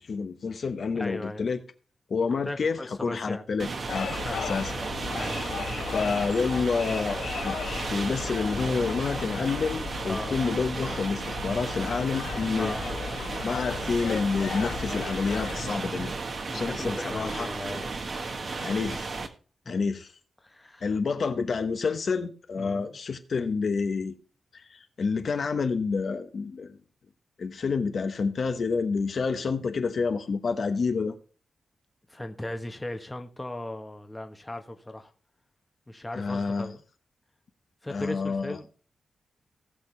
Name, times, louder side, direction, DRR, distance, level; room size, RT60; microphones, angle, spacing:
voice 1, 0.0-1.6 2.1-4.1 4.4-4.7 5.9-7.6 7.9-12.7 13.4-16.1 16.5-17.5 18.6-19.1 19.7-20.1 20.8-24.1 24.5-26.8 27.4-31.2 36.2-36.7 37.9-38.6, left 5 dB, 50° left, 1.1 m, -28 dB
voice 2, 0.9-1.5 2.4-3.4 4.2-4.5 5.1-5.4 10.1-10.4 12.5-13.0 16.5-17.9 19.6-19.8 20.4-21.0 22.6-22.9 32.1-35.1 35.9-36.8 37.8-38.7, left 1 dB, 10° left, 1.1 m, -37 dB
sound 1, 3.6-19.3, right 3 dB, 45° right, 1.4 m, -34 dB
sound 2, 3.9-15.7, left 6 dB, 85° left, 1.2 m, -36 dB
18.5 x 6.7 x 3.3 m
wide cardioid pair, 155°, 0 cm